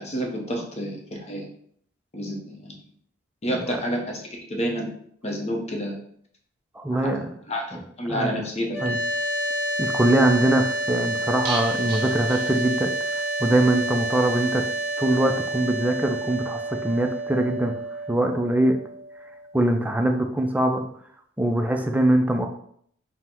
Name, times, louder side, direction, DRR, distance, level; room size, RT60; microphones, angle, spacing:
voice 1, 0.0-1.5 2.1-2.7 3.4-4.9 5.2-6.0 7.0-7.1 7.5-8.9, equal, 30° left, 0 dB, 0.7 m, -29 dB
voice 2, 6.8-7.3 7.7-8.4 8.8-9.0 9.8-12.9 13.4-14.7 15.0-17.8 18.1-18.8 19.5-20.8 21.4-22.5, right 1 dB, 10° right, 4 dB, 0.3 m, -22 dB
sound 1, 8.7-19.8, right 1 dB, 60° left, 0.9 m, -29 dB
sound 2, 11.4-13.2 13.5-13.6 13.9-14.0, right 4 dB, 50° right, 0.6 m, -36 dB
3.7 x 2.1 x 4.3 m, 0.65 s
head